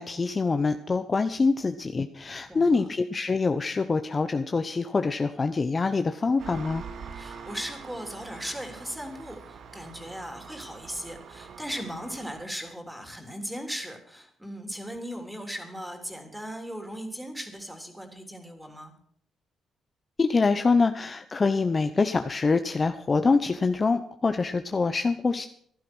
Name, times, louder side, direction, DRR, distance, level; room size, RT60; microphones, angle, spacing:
voice 1, 0.0-6.8 20.2-25.5, left 4 dB, 30° left, 8 dB, 0.9 m, -25 dB
voice 2, 2.5-2.9 7.1-18.9, equal, 5° right, 5 dB, 3.4 m, -38 dB
Engine, 6.4-12.4, right 6 dB, 60° right, 1.8 m, -44 dB
15.5 x 11.5 x 6.2 m, 0.63 s
cardioid pair, 90°, 0 cm